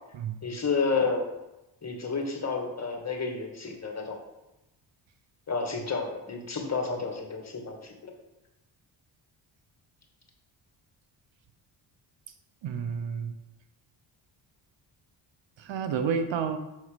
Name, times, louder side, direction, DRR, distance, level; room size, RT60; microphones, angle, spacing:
voice 1, 0.4-1.3 1.8-4.2 5.5-7.8, left 4 dB, 35° left, 1 dB, 1.8 m, -30 dB
voice 2, 12.6-13.4 15.6-16.6, right 6 dB, 65° right, 9 dB, 0.8 m, -30 dB
7.1 x 4.1 x 5.0 m, 0.95 s
cardioid pair, 65°, 48 cm